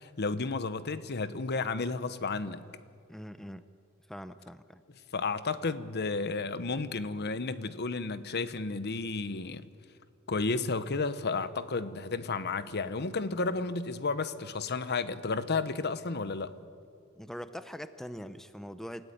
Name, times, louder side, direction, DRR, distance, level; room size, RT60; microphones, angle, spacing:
voice 1, 0.0-2.7 5.1-9.7 10.3-16.5, left 4 dB, 50° left, 0.9 m, -32 dB
voice 2, 3.1-3.7 4.1-4.8 17.1-19.1, equal, ahead, 0.6 m, -42 dB
28.0 x 14.0 x 9.3 m
head